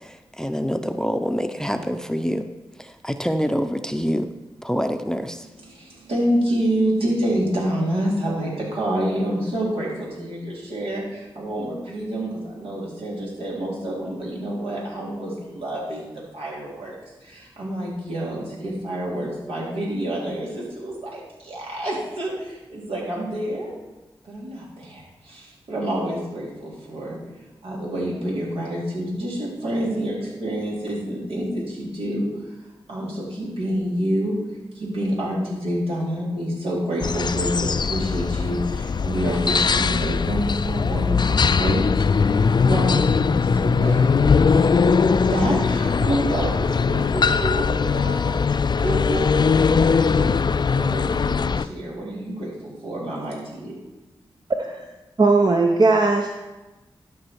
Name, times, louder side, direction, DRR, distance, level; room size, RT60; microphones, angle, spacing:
voice 1, 0.0-2.5 2.8-4.3 4.6-5.5, equal, 5° left, 8 dB, 0.7 m, -26 dB
voice 2, 5.6-17.0 17.2-23.7 24.2-32.3 32.9-34.4 34.7-42.4 42.6-44.1 44.6-48.4 48.8-50.4 50.7-53.9, right 1 dB, 80° right, -5 dB, 3.7 m, -28 dB
sound 1, 37.0-51.6, left 5 dB, 50° left, 0.4 m, -20 dB
voice 3, 55.2-56.4, right 3 dB, 45° right, 2 dB, 0.9 m, -18 dB
12.0 x 5.4 x 4.7 m, 1.1 s
cardioid pair, 40°, 10 cm